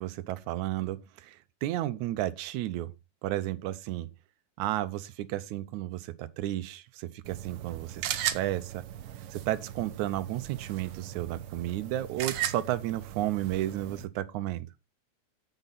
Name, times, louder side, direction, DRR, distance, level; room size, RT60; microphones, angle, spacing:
voice 1, 0.0-2.9 3.2-4.1 4.6-8.8 9.3-14.7, right 14 dB, 90° right, 2.1 m, -33 dB
sound 1, 7.2-14.0, right 11 dB, 75° right, 1.3 m, -37 dB
8.2 x 7.8 x 4.0 m
omnidirectional pair, 3.3 m